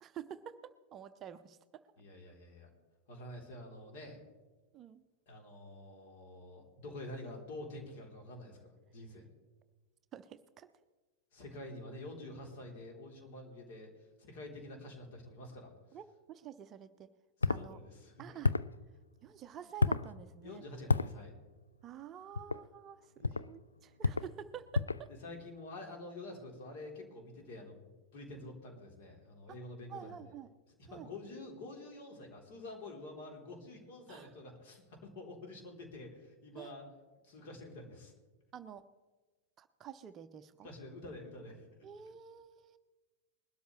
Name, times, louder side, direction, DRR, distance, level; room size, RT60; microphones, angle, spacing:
voice 1, 0.0-1.8 4.7-5.0 10.1-10.7 15.9-17.1 17.5-17.8 18.2-18.5 19.2-20.6 21.8-25.1 29.5-29.6 29.9-30.5 30.9-31.1 34.1-34.3 36.6-36.7 38.5-38.8 39.6-40.7 41.8-42.8, right 9 dB, 30° right, 11 dB, 0.6 m, -49 dB
voice 2, 2.0-2.7 3.1-4.2 5.3-9.3 11.3-13.9 14.2-15.7 17.4-18.4 20.4-21.3 23.2-23.4 25.1-27.8 28.1-30.3 30.9-36.9 37.2-38.1 40.6-41.6, left 2 dB, 50° left, 1 dB, 3.5 m, -48 dB
sound 1, 17.4-17.7 18.4-18.8 19.8-20.1 20.9-21.1 22.4-22.6 23.2-23.5 24.0-24.3 24.7-25.1, left 4 dB, 75° left, 0.3 m, -30 dB
21.0 x 12.5 x 3.2 m, 1.2 s
figure-of-eight pair, 90°, 0 cm